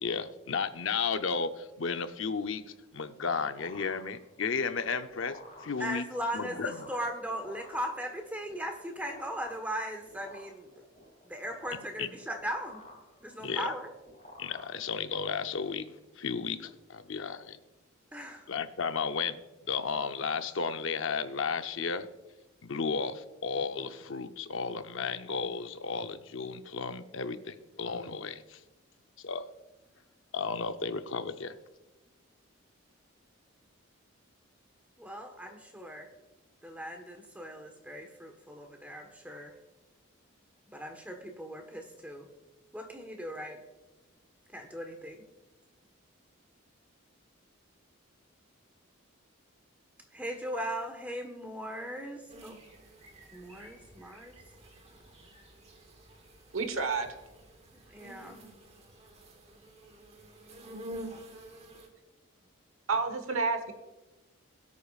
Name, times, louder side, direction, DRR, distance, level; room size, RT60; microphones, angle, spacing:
voice 1, 0.0-6.0 6.3-6.9 12.0-12.1 13.4-13.7 14.4-17.6 18.5-19.4 19.7-22.1 22.6-28.6 29.2-29.5 30.3-31.6, left 5 dB, 70° left, 10 dB, 0.7 m, -34 dB
sound 1, 2.9-15.3, left 1 dB, 30° left, 4.0 m, -53 dB
voice 2, 5.8-10.9 11.2-12.8 13.2-13.9 18.1-18.5 35.0-36.1 36.6-39.5 40.7-42.3 42.7-43.6 44.5-45.2 50.1-52.6 53.3-54.4 55.0-55.3 57.9-58.4, equal, 5° right, 4 dB, 1.3 m, -38 dB
sound 2, 52.3-61.9, right 1 dB, 30° right, 1.3 m, -49 dB
voice 3, 56.5-57.1 62.9-63.7, right 4 dB, 80° right, 7 dB, 1.2 m, -29 dB
21.0 x 8.4 x 2.4 m, 1.1 s
head